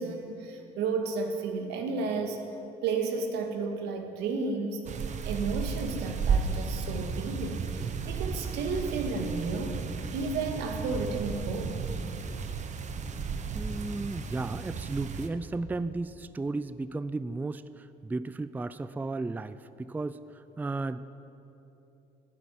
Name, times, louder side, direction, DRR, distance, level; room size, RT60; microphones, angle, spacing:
voice 1, 0.0-2.4 2.8-9.8 10.1-11.8, right 4 dB, 85° right, 4 dB, 2.0 m, -32 dB
sound 1, 4.9-15.3, right 5 dB, 45° right, 1.1 m, -33 dB
voice 2, 13.5-21.0, right 3 dB, 10° right, 14 dB, 0.4 m, -34 dB
12.5 x 11.5 x 9.9 m, 2.9 s
cardioid pair, 110°, 17 cm